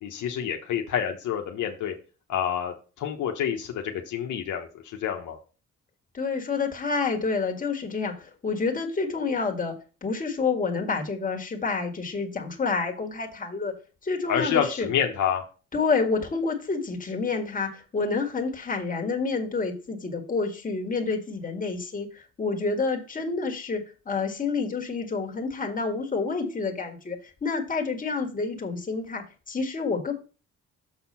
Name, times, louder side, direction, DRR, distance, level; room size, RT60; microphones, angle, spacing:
voice 1, 0.0-1.9 2.3-5.4 14.3-15.4, left 8 dB, 75° left, 3 dB, 1.1 m, -28 dB
voice 2, 6.1-9.7 10.0-13.7 14.0-14.9 15.7-23.8 24.1-30.1, left 4 dB, 25° left, 2 dB, 1.9 m, -28 dB
6.8 x 4.3 x 5.6 m, 0.35 s
cardioid pair, 90°, 30 cm